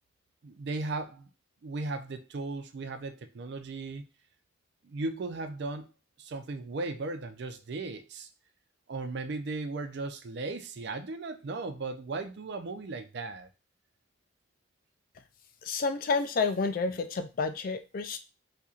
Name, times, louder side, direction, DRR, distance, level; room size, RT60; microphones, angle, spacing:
voice 1, 0.4-1.3 1.6-4.0 4.8-5.9 6.2-8.3 8.9-13.5, right 3 dB, 55° right, 9 dB, 0.4 m, -36 dB
voice 2, 15.6-18.2, left 4 dB, 45° left, 9 dB, 0.3 m, -30 dB
4.2 x 2.6 x 2.4 m, 0.30 s
head